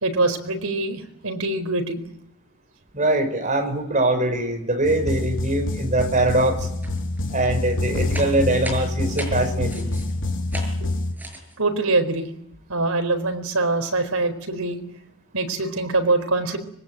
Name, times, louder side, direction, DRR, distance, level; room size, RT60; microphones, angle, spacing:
voice 1, 0.0-2.0 10.8-10.9 11.6-12.3 12.7-14.8 15.3-16.6, right 2 dB, 85° right, 7 dB, 4.5 m, -23 dB
voice 2, 2.9-6.6 7.3-9.9, right 2 dB, 35° right, 5 dB, 5.8 m, -22 dB
sound 1, 4.8-11.1, left 2 dB, 60° left, 3.4 m, -26 dB
sound 2, 6.8-7.2 7.4-10.1 10.5-10.8 11.1-11.6, right 1 dB, 10° right, 6.6 m, -36 dB
25.0 x 22.0 x 9.2 m, 0.78 s
head